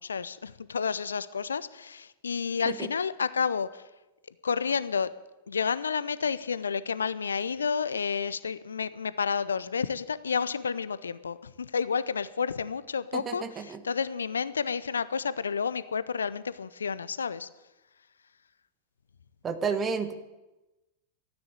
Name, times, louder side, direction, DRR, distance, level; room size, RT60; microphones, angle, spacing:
voice 1, 0.0-3.9 4.4-5.1 5.5-17.5, left 6 dB, 70° left, 16 dB, 0.5 m, -30 dB
voice 2, 13.1-13.8 19.4-20.1, right 5 dB, 25° right, 9 dB, 1.3 m, -31 dB
13.5 x 9.8 x 8.3 m, 1.0 s
figure-of-eight pair, 90°, 0 cm